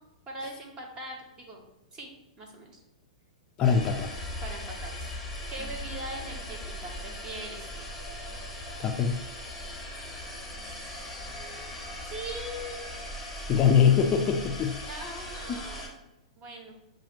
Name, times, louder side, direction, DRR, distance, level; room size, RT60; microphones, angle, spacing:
voice 1, 0.3-2.8 4.4-5.1 5.5-7.6 11.4-11.8 12.0-12.9 14.8-15.9 16.4-16.7, right 1 dB, 25° right, 0 dB, 1.1 m, -41 dB
voice 2, 3.6-4.2 8.8-9.2 13.5-14.9, left 7 dB, 30° left, 4 dB, 0.4 m, -23 dB
sound 1, 3.6-15.9, left 1 dB, ahead, 1.0 m, -39 dB
6.9 x 2.5 x 2.9 m, 0.90 s
figure-of-eight pair, 110°, 3 cm